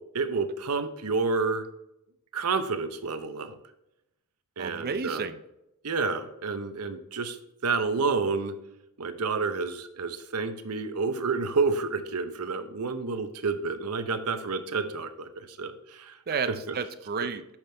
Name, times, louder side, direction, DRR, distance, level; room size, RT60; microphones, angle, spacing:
voice 1, 0.1-1.7 2.3-3.6 4.6-5.2 5.8-7.4 7.6-8.5 9.0-16.2, right 4 dB, 90° right, 9 dB, 0.8 m, -29 dB
voice 2, 4.6-5.4 16.3-17.4, right 5 dB, 45° right, 11 dB, 0.5 m, -32 dB
8.8 x 5.9 x 3.3 m, 0.86 s
head